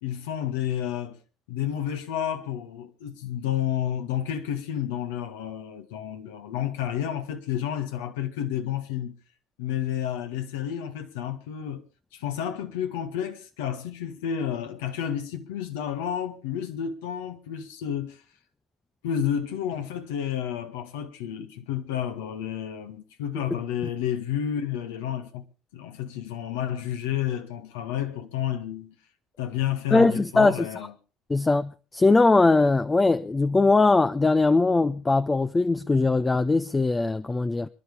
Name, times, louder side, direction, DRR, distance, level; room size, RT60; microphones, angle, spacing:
voice 1, 0.0-1.2 1.5-9.2 9.6-11.8 12.1-18.2 19.0-25.4 25.7-29.0 29.4-30.9, left 10 dB, 75° left, 1.8 m, -30 dB
voice 2, 29.9-30.7 31.3-37.7, left 3 dB, 20° left, 0.6 m, -21 dB
25.5 x 11.0 x 3.5 m
hypercardioid pair, 70°, 0 cm